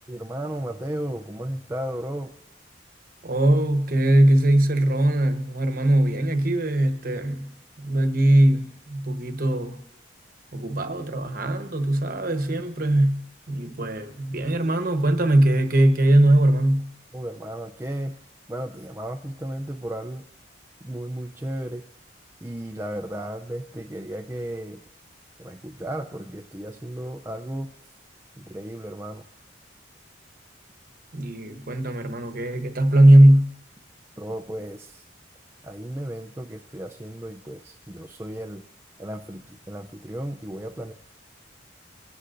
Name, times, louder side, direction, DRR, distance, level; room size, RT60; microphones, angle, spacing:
voice 1, 0.1-2.3 17.1-18.2 18.5-20.2 20.8-21.8 22.4-24.8 25.4-27.7 28.4-29.2 34.2-35.0 35.6-38.6 39.0-40.9, right 1 dB, 15° right, 0.4 m, -34 dB
voice 2, 3.2-7.5 7.8-9.8 10.5-16.9 31.1-33.6, right 1 dB, 50° right, 1.0 m, -20 dB
30.0 x 16.5 x 2.6 m
head